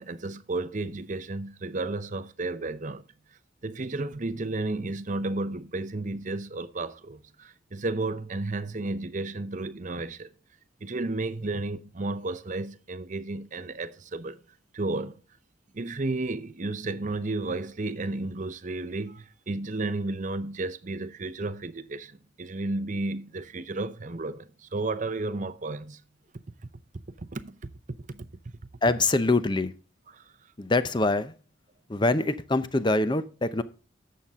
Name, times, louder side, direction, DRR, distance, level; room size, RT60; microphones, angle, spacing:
voice 1, 0.0-3.0 3.6-10.3 10.8-14.4 14.7-15.2 15.7-26.0 27.2-27.6 28.1-28.3 30.1-30.3, right 2 dB, 40° right, 0.7 m, -32 dB
voice 2, 28.8-29.7 30.6-31.3 31.9-33.6, left 2 dB, 25° left, 0.6 m, -24 dB
11.0 x 7.6 x 3.6 m
head